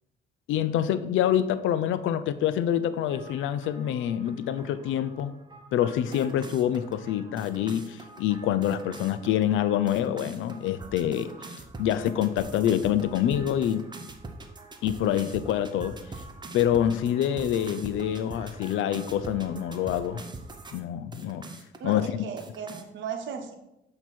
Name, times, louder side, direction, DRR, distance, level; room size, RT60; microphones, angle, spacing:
voice 1, 0.5-5.3 5.7-11.3 11.8-13.9 14.8-16.0 16.5-20.2 20.7-21.5 21.8-22.2, left 10 dB, 80° left, 13 dB, 0.4 m, -26 dB
sound 1, 3.1-20.8 21.1-21.9 22.4-22.8, right 2 dB, 20° right, 0.7 m, -44 dB
voice 2, 21.8-23.5, right 7 dB, 75° right, 5 dB, 0.9 m, -36 dB
7.9 x 2.9 x 4.4 m, 0.88 s
cardioid pair, 90°, 20 cm